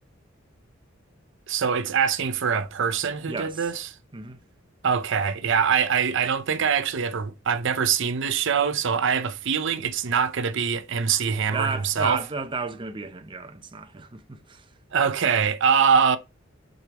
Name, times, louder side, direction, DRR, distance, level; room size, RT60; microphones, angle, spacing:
voice 1, 1.5-3.9 4.8-12.2 14.9-16.2, right 6 dB, 65° right, 0.6 m, -23 dB
voice 2, 3.3-3.7 4.1-4.4 11.5-14.7, right 4 dB, 25° right, 0.6 m, -33 dB
6.4 x 4.9 x 2.9 m
head